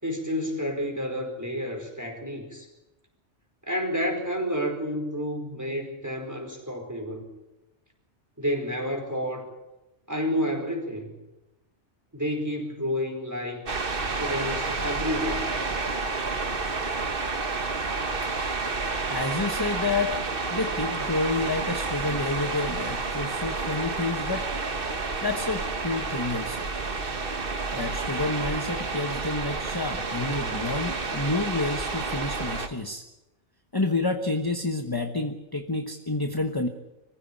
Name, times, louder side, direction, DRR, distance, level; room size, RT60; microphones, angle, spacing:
voice 1, 0.0-2.7 3.7-7.3 8.4-9.5 10.1-11.1 12.1-13.7 14.2-15.5, equal, 15° right, 2 dB, 4.8 m, -30 dB
sound 1, 13.7-32.7, right 3 dB, 50° right, 1.7 m, -30 dB
voice 2, 19.1-20.2 20.5-24.4 25.2-26.6 27.7-33.0 33.7-36.7, left 3 dB, 20° left, 6 dB, 1.2 m, -29 dB
24.5 x 15.5 x 8.8 m, 1.0 s
omnidirectional pair, 1.2 m